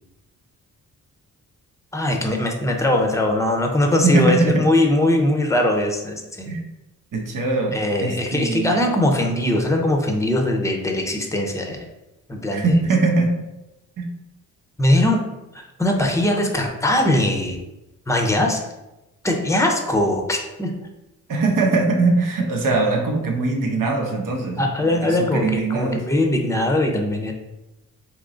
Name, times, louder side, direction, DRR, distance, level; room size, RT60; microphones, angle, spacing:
voice 1, 1.9-6.5 7.7-11.9 12.3-12.7 14.8-15.2 15.5-17.6 18.1-18.6 19.2-20.7 24.6-27.3, left 1 dB, 10° left, 3 dB, 0.7 m, -21 dB
voice 2, 4.0-4.6 6.5-6.6 7.1-7.8 8.0-8.8 12.5-13.3 14.0-14.1 21.3-26.0, right 3 dB, 65° right, 2 dB, 0.9 m, -21 dB
3.7 x 3.1 x 3.8 m, 0.97 s
cardioid pair, 80°, 35 cm